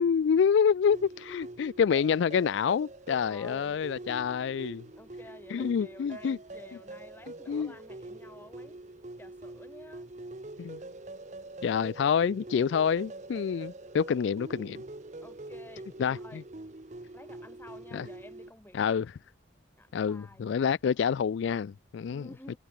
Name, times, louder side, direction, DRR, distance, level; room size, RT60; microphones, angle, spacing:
voice 1, 0.0-4.8 5.5-6.4 7.5-7.7 10.6-10.8 11.6-14.8 16.0-16.4 17.9-18.1 18.7-19.1 19.9-22.3, left 7 dB, 70° left, 0.3 m, -27 dB
sound 1, 0.9-18.5, right 2 dB, 35° right, 0.9 m, -45 dB
voice 2, 3.2-3.8 4.9-8.8 9.2-10.1 14.1-14.2 15.2-16.5 17.1-19.1 19.8-20.5 22.1-22.6, left 1 dB, 10° left, 3.5 m, -52 dB
head